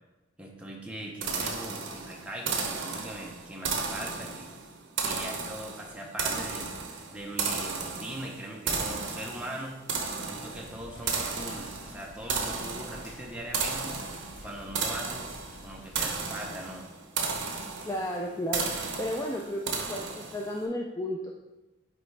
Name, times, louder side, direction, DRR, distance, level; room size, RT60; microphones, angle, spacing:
voice 1, 0.4-4.5 5.0-6.7 7.1-9.8 10.2-14.0 14.4-15.4 15.6-16.9, right 1 dB, 5° right, -1 dB, 0.8 m, -40 dB
sound 1, 1.2-20.6, right 5 dB, 70° right, 0.8 m, -34 dB
sound 2, 10.4-16.0, left 1 dB, 90° left, 1.4 m, -50 dB
voice 2, 17.9-18.7 19.0-21.3, left 1 dB, 15° left, 0 dB, 0.3 m, -33 dB
9.0 x 3.4 x 3.3 m, 1.1 s
head